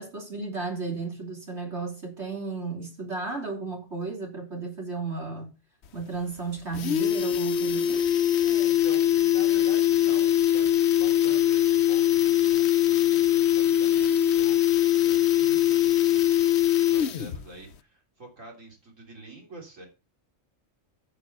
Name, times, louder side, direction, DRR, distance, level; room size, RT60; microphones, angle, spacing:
voice 1, 0.0-5.5 5.9-8.1, right 4 dB, 55° right, 3.5 m, -34 dB
sound 1, 5.8-5.9 6.2-6.3 6.6-17.4 17.7-17.8, left 11 dB, 60° left, 0.9 m, -22 dB
voice 2, 8.4-10.7 11.0-16.4 16.9-19.9, right 2 dB, 80° right, 3.7 m, -46 dB
9.1 x 6.5 x 6.7 m
omnidirectional pair, 1.3 m